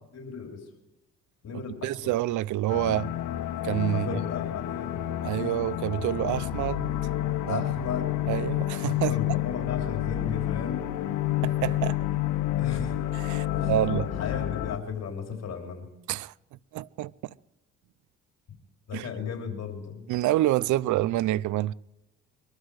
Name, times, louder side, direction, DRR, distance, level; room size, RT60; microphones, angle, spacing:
voice 1, 0.1-0.6 1.4-2.1 3.9-5.0 7.5-8.1 9.1-10.9 12.6-13.0 13.5-13.7 14.2-15.9 18.9-20.1, left 6 dB, 60° left, 3.5 m, -35 dB
voice 2, 1.8-3.1 3.6-4.2 5.2-6.9 7.4-7.6 8.3-9.1 11.4-12.0 13.3-14.1 16.1-16.3 16.7-17.1 18.9-19.1 20.1-21.7, right 14 dB, 80° right, 0.5 m, -27 dB
sound 1, 2.7-14.8, left 13 dB, 85° left, 1.2 m, -29 dB
22.5 x 13.0 x 4.8 m
cardioid pair, 90°, 30 cm